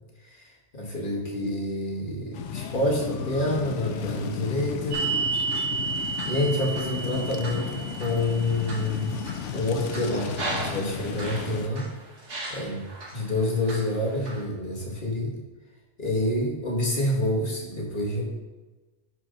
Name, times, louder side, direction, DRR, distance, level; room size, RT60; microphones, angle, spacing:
voice 1, 0.2-5.0 6.0-9.1 9.5-11.9 12.5-12.9 13.1-15.4 16.0-18.2, left 1 dB, 45° left, -2 dB, 1.9 m, -28 dB
sound 1, 2.3-11.7, left 8 dB, 90° left, 1.0 m, -34 dB
sound 2, 4.9-11.9 12.3-13.1 13.7-14.4, right 4 dB, 90° right, 1.9 m, -33 dB
10.5 x 4.8 x 3.9 m, 1.2 s
omnidirectional pair, 1.2 m